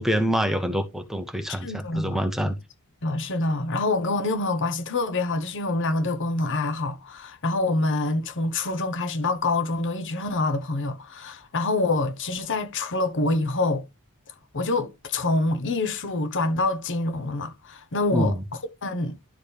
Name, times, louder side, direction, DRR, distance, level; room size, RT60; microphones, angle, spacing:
voice 1, 0.0-2.6 18.1-18.4, equal, ahead, 0.8 m, -26 dB
voice 2, 1.5-2.2 3.0-13.9 14.5-18.3 18.8-19.2, left 2 dB, 55° left, 1.0 m, -26 dB
11.5 x 4.4 x 3.4 m
head